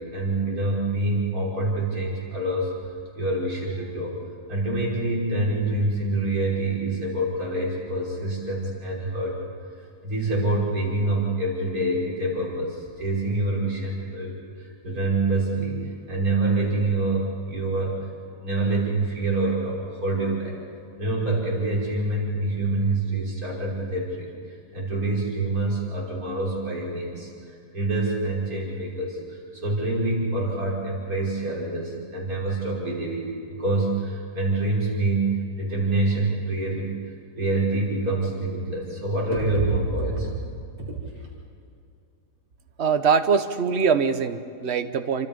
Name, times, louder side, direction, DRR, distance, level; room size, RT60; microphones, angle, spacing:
voice 1, 0.0-2.7 3.1-4.1 4.5-9.4 10.0-18.0 18.4-20.6 21.0-36.9 37.4-40.3 40.8-40.9, right 2 dB, 65° right, -4 dB, 5.8 m, -26 dB
voice 2, 42.8-45.3, right 6 dB, 45° right, 9 dB, 1.2 m, -22 dB
29.0 x 25.5 x 5.4 m, 2.5 s
omnidirectional pair, 1.7 m